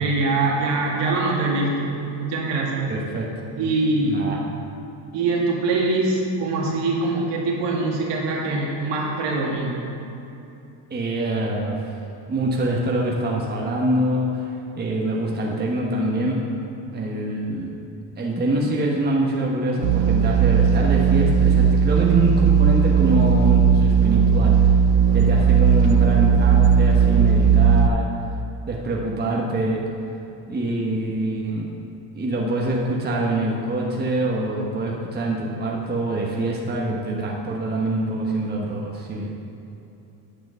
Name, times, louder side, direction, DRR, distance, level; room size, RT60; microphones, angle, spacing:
voice 1, 0.0-2.9 3.6-4.2 5.1-9.8, right 3 dB, 60° right, -2 dB, 2.2 m, -23 dB
voice 2, 2.9-3.3 4.0-4.4 10.9-12.0 12.3-16.5 16.9-17.7 18.2-24.5 25.1-28.1 28.7-29.8 30.5-31.7 32.1-39.3, right 1 dB, 20° right, -2 dB, 1.2 m, -25 dB
sound 1, 19.8-27.9, right 7 dB, 90° right, 0.6 m, -17 dB
9.9 x 5.0 x 6.7 m, 2.8 s
supercardioid pair, 105°, 47 cm